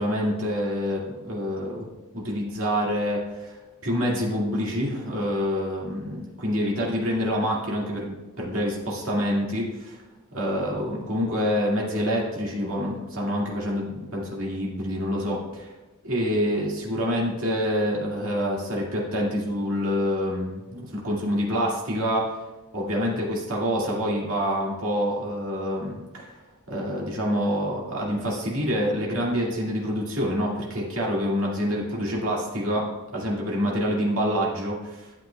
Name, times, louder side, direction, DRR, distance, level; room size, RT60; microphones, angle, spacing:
voice 1, 0.0-10.0 10.3-15.7 16.0-22.3 22.7-26.4 26.7-35.1, equal, 65° right, -4 dB, 2.1 m, -27 dB
12.0 x 7.5 x 2.3 m, 1.1 s
head